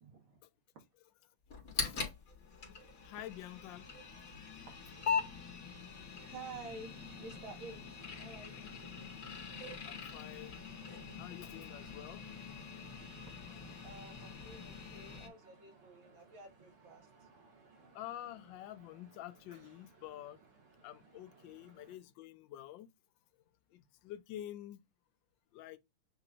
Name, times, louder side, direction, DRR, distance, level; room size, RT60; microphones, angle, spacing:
voice 1, 0.0-0.4 6.2-9.1 13.8-17.3, right 4 dB, 70° right, 2.2 m, -51 dB
sound 1, 1.5-15.3, left 6 dB, 45° left, 1.7 m, -42 dB
voice 2, 3.0-3.9 9.8-10.6 11.2-12.3 17.9-20.4 20.8-22.9 23.7-24.8 25.5-25.8, left 13 dB, 75° left, 1.2 m, -48 dB
sound 2, 6.4-22.0, right 4 dB, 85° right, 2.6 m, -63 dB
7.2 x 2.9 x 2.4 m
omnidirectional pair, 2.3 m